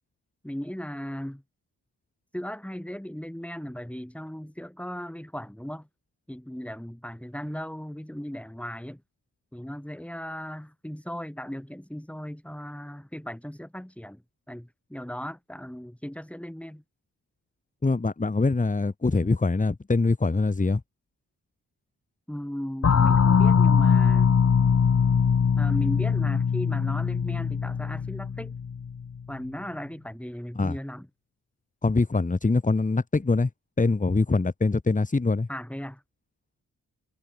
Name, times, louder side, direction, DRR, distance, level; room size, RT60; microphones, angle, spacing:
voice 1, 0.4-1.4 2.3-5.9 6.3-9.0 9.5-16.8 22.3-24.4 25.6-28.6 29.3-31.1 35.5-36.0, equal, 5° left, 4.8 m, -37 dB
voice 2, 17.8-20.8 30.5-30.8 31.8-33.5 33.8-35.5, left 3 dB, 20° left, 1.2 m, -23 dB
sound 1, 22.8-29.2, left 6 dB, 45° left, 1.2 m, -22 dB
cardioid pair, 70°, 37 cm